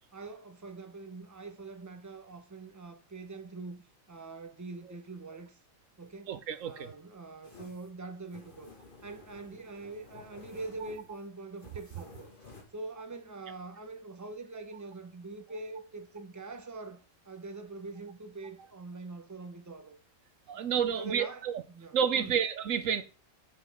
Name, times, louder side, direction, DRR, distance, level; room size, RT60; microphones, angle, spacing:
voice 1, 0.1-5.6 6.0-6.3 6.6-8.7 9.0-12.3 12.7-20.0 20.5-22.3, right 3 dB, 15° right, 1.0 m, -44 dB
voice 2, 6.3-6.9 20.5-21.5 21.9-23.0, right 8 dB, 70° right, 1.1 m, -30 dB
sound 1, 7.4-12.6, left 3 dB, 40° left, 2.2 m, -53 dB
10.5 x 7.9 x 3.6 m
omnidirectional pair, 1.4 m